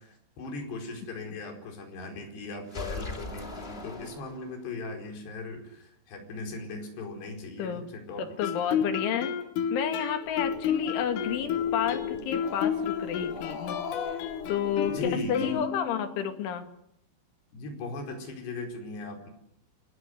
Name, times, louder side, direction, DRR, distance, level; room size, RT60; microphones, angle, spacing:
voice 1, 0.0-8.2 8.7-8.9 14.9-15.7 17.5-19.3, left 3 dB, 60° left, 4 dB, 6.7 m, -38 dB
sound 1, 2.7-4.8, left 3 dB, 15° left, 2.3 m, -39 dB
voice 2, 8.2-9.3 9.7-13.8 14.1-16.7, left 8 dB, 75° left, 8 dB, 4.5 m, -31 dB
Guitar, 8.4-16.1, left 8 dB, 90° left, 4.6 m, -31 dB
Growling, 10.3-15.6, left 6 dB, 40° left, 4.3 m, -39 dB
28.0 x 21.5 x 9.6 m, 0.76 s
omnidirectional pair, 5.7 m